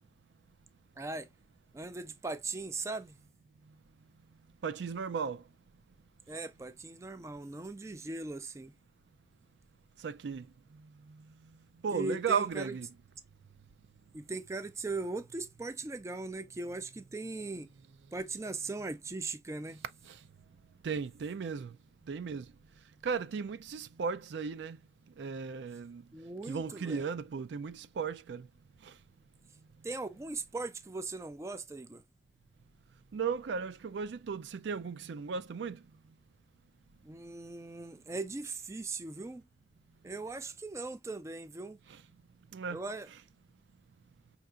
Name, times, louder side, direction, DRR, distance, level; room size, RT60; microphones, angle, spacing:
voice 1, 1.0-1.3 1.7-3.1 6.3-8.7 11.9-12.8 14.1-17.7 18.1-19.8 26.1-27.0 29.8-32.0 37.0-39.4 40.0-41.8 42.7-43.1, right 3 dB, 15° right, 0.3 m, -39 dB
voice 2, 4.6-5.4 10.0-10.5 10.7-10.8 11.1-11.3 11.8-12.9 20.1-20.2 20.8-21.8 22.1-22.5 23.0-24.8 25.2-26.1 26.5-28.5 28.8-28.9 33.1-35.8 42.5-42.8, right 6 dB, 90° right, 0.4 m, -35 dB
5.5 x 2.8 x 2.3 m
head